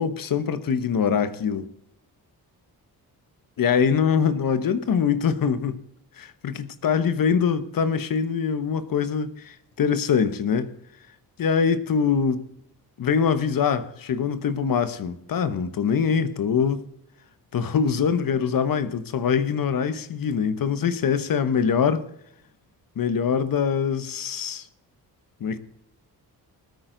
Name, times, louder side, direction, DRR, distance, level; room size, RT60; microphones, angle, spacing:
voice 1, 0.0-1.7 3.6-5.8 6.2-10.7 11.4-12.5 13.0-16.8 17.5-22.1 23.0-24.7 25.4-25.6, left 6 dB, 60° left, 1.1 m, -23 dB
20.0 x 9.0 x 3.9 m
cardioid pair, 105°, 37 cm